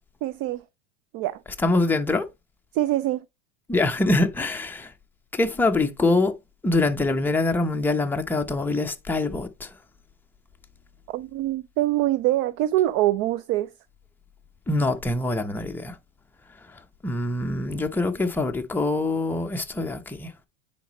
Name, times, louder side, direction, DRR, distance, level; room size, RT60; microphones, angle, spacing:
voice 1, 0.2-0.6 1.1-1.4 2.7-3.2 11.1-13.7, right 14 dB, 35° right, 0.4 m, -24 dB
voice 2, 1.6-2.3 3.7-4.9 5.3-6.3 6.6-9.7 14.7-16.0 17.0-20.3, left 2 dB, 5° left, 0.8 m, -24 dB
9.1 x 4.3 x 3.0 m
hypercardioid pair, 115°, 37 cm